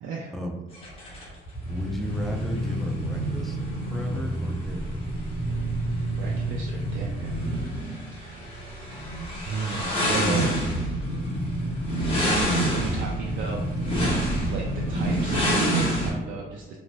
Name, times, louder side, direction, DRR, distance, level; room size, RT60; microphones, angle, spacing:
voice 1, 0.0-0.3 6.2-7.4 8.1-8.4 9.5-10.5 12.3-13.6 14.5-16.8, right 4 dB, 75° right, -2 dB, 0.4 m, -34 dB
sound 1, 0.7-16.1, right 1 dB, 30° left, 1.0 m, -27 dB
voice 2, 1.7-3.6 3.8-5.0, left 1 dB, ahead, 1 dB, 0.4 m, -34 dB
2.6 x 2.1 x 3.1 m, 1.1 s
cardioid pair, 90°, 20 cm